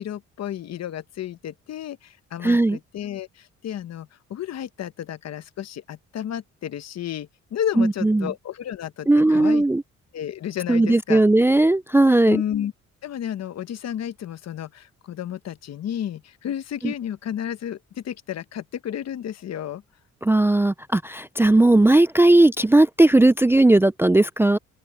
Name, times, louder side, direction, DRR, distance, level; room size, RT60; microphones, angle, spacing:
voice 1, 0.0-9.7 10.1-11.2 12.3-12.7 13.0-19.8, left 10 dB, 60° left, 1.0 m, -32 dB
voice 2, 2.4-2.8 7.8-8.3 9.1-9.8 10.7-12.4 16.8-16.9 20.2-24.6, right 2 dB, 10° right, 0.4 m, -17 dB
open air
cardioid pair, 90°, 30 cm